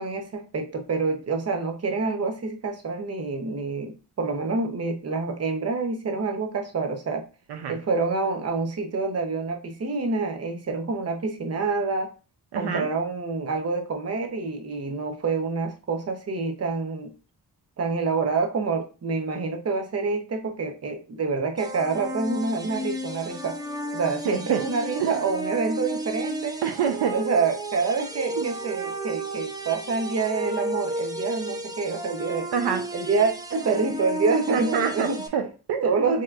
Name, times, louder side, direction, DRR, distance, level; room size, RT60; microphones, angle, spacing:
voice 1, 0.0-7.3 7.7-12.1 12.6-17.1 17.8-23.6 23.9-26.6 27.1-32.5 32.9-35.2 35.8-36.2, right 4 dB, 40° right, 6 dB, 0.8 m, -27 dB
voice 2, 12.5-12.9 24.3-24.6 25.0-25.2 26.6-27.1 28.4-28.5 32.5-32.8 34.5-36.1, right 7 dB, 75° right, 6 dB, 0.6 m, -27 dB
sound 1, 21.6-35.3, right 1 dB, 10° right, 0.6 m, -33 dB
4.6 x 2.9 x 2.4 m, 0.33 s
cardioid pair, 80°, 41 cm